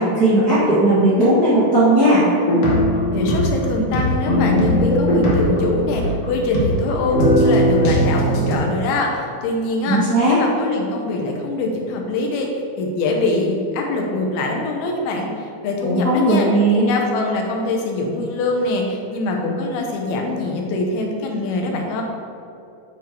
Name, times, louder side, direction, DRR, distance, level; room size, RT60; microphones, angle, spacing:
voice 1, 0.0-2.2 9.8-10.4 15.8-16.9, right 1 dB, 80° right, -12 dB, 0.8 m, -16 dB
sound 1, 2.5-8.5, equal, 65° left, 1.5 m, -19 dB
voice 2, 3.1-12.5 12.8-16.5 16.8-22.0, left 2 dB, 85° left, 1 dB, 2.8 m, -23 dB
9.3 x 3.6 x 4.4 m, 2.6 s
omnidirectional pair, 4.3 m